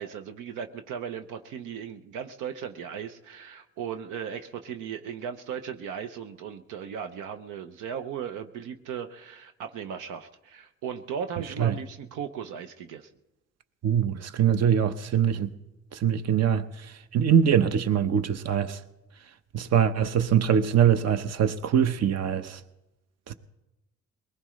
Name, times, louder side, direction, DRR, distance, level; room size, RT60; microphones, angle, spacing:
voice 1, 0.0-13.1, right 7 dB, 90° right, 0.8 m, -37 dB
voice 2, 13.8-15.5 15.9-18.8 19.5-22.6 23.3-23.4, right 8 dB, 60° right, 0.9 m, -23 dB
22.0 x 19.5 x 3.2 m
cardioid pair, 90°, 30 cm